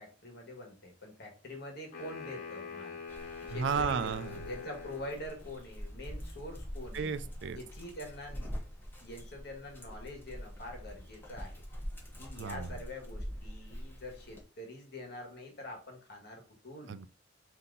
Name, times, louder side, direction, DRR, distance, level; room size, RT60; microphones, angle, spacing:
voice 1, 0.0-3.0 3.5-7.1 7.5-8.6 9.0-11.6 12.2-17.0, left 1 dB, 60° left, 1.4 m, -45 dB
sound 1, 1.9-5.3, left 5 dB, 45° left, 1.6 m, -44 dB
Dog, 3.1-14.4, equal, 10° left, 1.1 m, -44 dB
voice 2, 3.5-4.4 6.9-7.6 12.4-12.7 16.9-17.1, right 6 dB, 70° right, 0.4 m, -33 dB
3.7 x 2.8 x 3.8 m
head